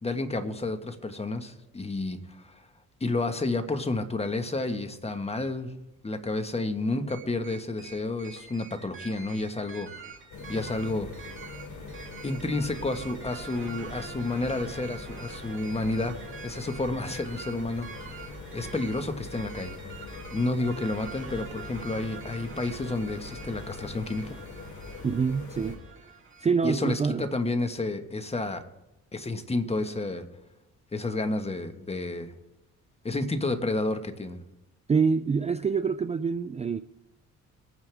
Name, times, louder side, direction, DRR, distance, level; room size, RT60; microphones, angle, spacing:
voice 1, 0.0-2.6 3.0-5.7 6.0-9.9 10.5-11.1 12.2-16.2 16.4-19.8 20.3-24.4 26.6-28.6 29.1-30.2 30.9-32.3 33.0-34.4, left 2 dB, 20° left, 1.4 m, -30 dB
sound 1, 7.1-26.5, right 6 dB, 40° right, 2.4 m, -46 dB
sound 2, 10.3-25.8, left 3 dB, 75° left, 3.0 m, -42 dB
voice 2, 25.0-26.1 26.4-27.3 34.9-36.8, right 5 dB, 20° right, 0.4 m, -26 dB
23.0 x 9.5 x 3.5 m
cardioid pair, 90°, 30 cm